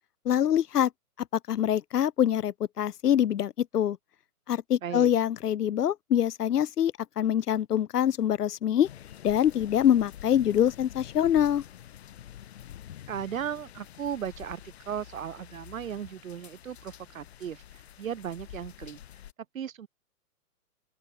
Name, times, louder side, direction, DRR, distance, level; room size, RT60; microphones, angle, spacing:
voice 1, 0.2-0.9 1.5-4.0 4.5-8.9 9.2-11.6, left 10 dB, 80° left, 0.9 m, -25 dB
voice 2, 4.8-5.1 13.1-17.6 18.0-19.0 19.5-19.9, right 9 dB, 60° right, 2.2 m, -36 dB
sound 1, 8.8-19.3, left 11 dB, 45° left, 4.5 m, -47 dB
open air
hypercardioid pair, 170°, 46 cm